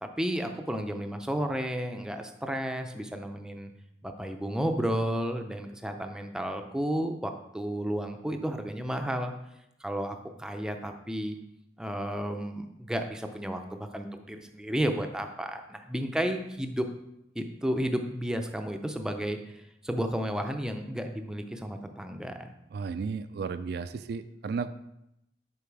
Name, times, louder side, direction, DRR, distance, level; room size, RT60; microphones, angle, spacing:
voice 1, 0.0-3.7 4.0-9.3 9.8-11.4 11.8-16.9 17.4-22.5, equal, 5° right, 5 dB, 0.5 m, -32 dB
voice 2, 22.7-24.7, right 5 dB, 60° right, 11 dB, 0.3 m, -34 dB
6.9 x 4.7 x 4.7 m, 0.82 s
head